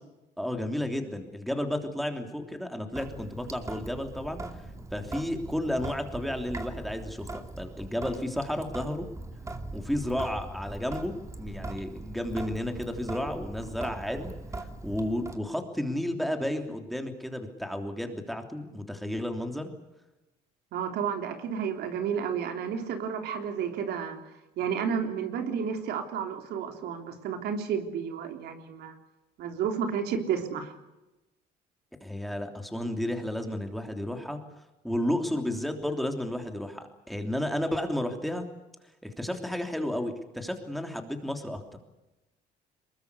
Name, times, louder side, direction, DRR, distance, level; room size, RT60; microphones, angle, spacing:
voice 1, 0.4-4.4 4.9-9.1 9.7-14.3 14.8-19.7 32.0-34.4 34.8-38.4 39.2-41.6, left 1 dB, ahead, 5 dB, 3.2 m, -32 dB
Sink (filling or washing) / Drip, 2.9-15.4, right 2 dB, 20° right, 2.6 m, -41 dB
voice 2, 20.7-24.2 24.6-28.9 29.4-30.7, right 7 dB, 75° right, 5 dB, 3.5 m, -31 dB
23.0 x 21.5 x 8.3 m, 0.99 s
cardioid pair, 110°, 17 cm